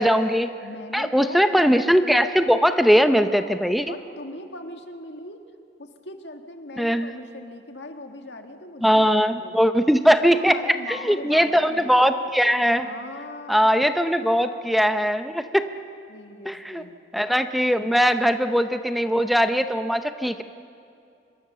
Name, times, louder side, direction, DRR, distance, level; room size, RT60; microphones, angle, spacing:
voice 1, 0.0-0.5 0.9-3.9 6.8-7.1 8.8-10.6 10.9-12.9 13.5-15.6 16.5-16.8 17.1-20.4, equal, ahead, 8 dB, 0.7 m, -20 dB
voice 2, 0.6-1.5 3.0-3.5 3.9-5.5 5.8-9.5 10.3-12.1 12.8-13.7 16.1-17.1, left 2 dB, 80° left, 5 dB, 1.9 m, -40 dB
25.5 x 22.0 x 6.9 m, 2.6 s
head